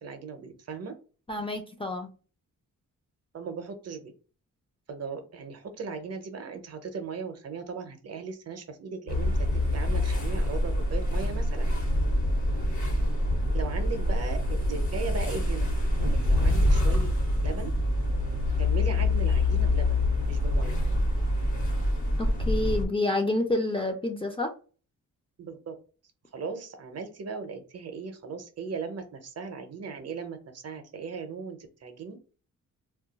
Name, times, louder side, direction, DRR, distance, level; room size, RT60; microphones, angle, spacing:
voice 1, 0.0-0.9 3.3-4.1 4.9-9.4 9.7-11.7 13.5-14.4 14.7-15.7 16.0-17.1 17.4-17.7 18.6-20.8 25.4-25.7 26.3-32.2, right 5 dB, 50° right, 7 dB, 0.6 m, -38 dB
voice 2, 1.3-2.1 22.2-24.5, left 2 dB, 15° left, 2 dB, 0.4 m, -28 dB
sound 1, 9.1-22.8, left 1 dB, 60° left, 1.0 m, -25 dB
2.3 x 2.2 x 3.8 m, 0.37 s
wide cardioid pair, 145°, 32 cm